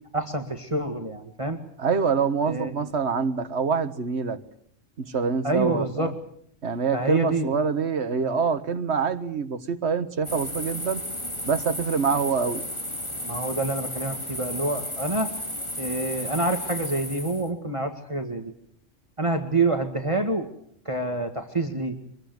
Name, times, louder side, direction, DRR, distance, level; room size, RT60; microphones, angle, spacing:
voice 1, 0.1-1.6 2.5-2.9 5.4-6.1 6.9-7.5 13.3-15.3 15.8-18.5 19.2-20.5 20.9-22.0, right 2 dB, 25° right, 5 dB, 1.9 m, -27 dB
voice 2, 1.8-4.4 5.0-6.1 6.6-11.0 11.5-12.6, right 5 dB, 60° right, 10 dB, 1.8 m, -25 dB
sound 1, 10.2-17.5, left 1 dB, 20° left, 3.5 m, -34 dB
25.5 x 22.0 x 7.9 m, 0.67 s
omnidirectional pair, 1.3 m